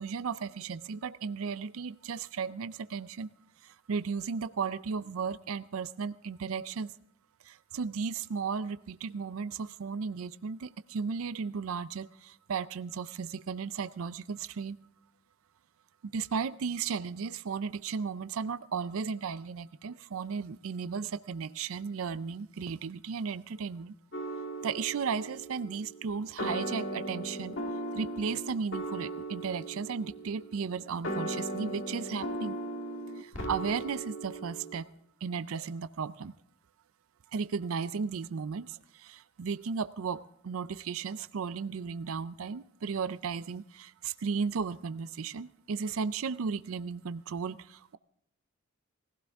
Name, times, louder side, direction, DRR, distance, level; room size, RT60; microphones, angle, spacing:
voice 1, 0.0-3.3 3.6-6.9 7.4-14.8 16.0-23.9 24.6-27.6 27.9-32.5 33.1-34.9 35.2-36.3 37.3-48.0, right 5 dB, 75° right, 13 dB, 0.4 m, -35 dB
sound 1, 24.1-34.8, right 1 dB, 60° left, 1.8 m, -38 dB
20.0 x 16.0 x 3.5 m, 0.75 s
head